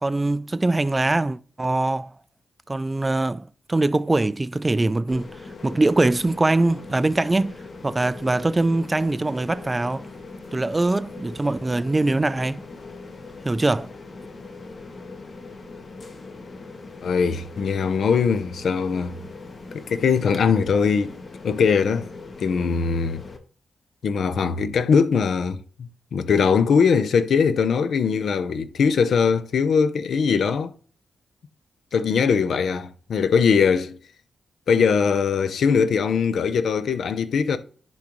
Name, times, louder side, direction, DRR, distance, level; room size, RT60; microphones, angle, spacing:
voice 1, 0.0-2.1 2.7-5.3 5.6-7.5 7.8-10.1 10.5-12.6 13.4-13.9, right 2 dB, 25° right, 0.4 m, -22 dB
sound 1, 5.1-23.4, left 3 dB, 50° left, 1.2 m, -40 dB
voice 2, 17.0-19.2 19.9-21.1 21.4-22.1 22.4-23.2 24.0-30.7 31.9-34.0 34.7-37.6, left 6 dB, 75° left, 0.7 m, -21 dB
10.5 x 3.8 x 3.1 m
cardioid pair, 60°, 0 cm